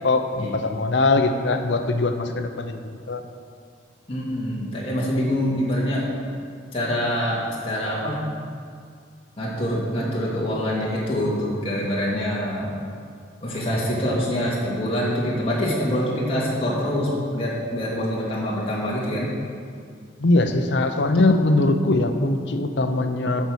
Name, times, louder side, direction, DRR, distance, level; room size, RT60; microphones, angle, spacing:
voice 1, 0.0-3.2 20.2-23.5, left 2 dB, 65° left, 6 dB, 0.7 m, -21 dB
voice 2, 4.1-6.1 6.7-8.2 9.4-12.7 13.4-19.4, equal, 30° left, -6 dB, 2.3 m, -25 dB
8.6 x 6.9 x 6.2 m, 2.2 s
head